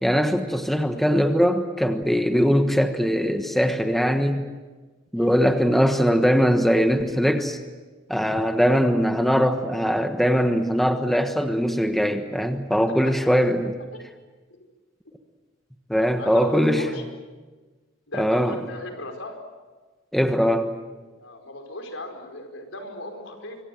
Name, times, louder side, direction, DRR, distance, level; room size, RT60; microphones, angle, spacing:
voice 1, 0.0-4.5 5.1-7.6 8.1-13.8 15.9-16.8 18.2-18.6 20.1-20.7, equal, ahead, 6 dB, 1.3 m, -21 dB
voice 2, 13.0-13.4 13.9-14.0 14.5-14.6 16.2-17.0 18.1-19.4 21.2-23.6, left 1 dB, 85° left, 4 dB, 4.9 m, -36 dB
26.0 x 24.5 x 7.7 m, 1.3 s
head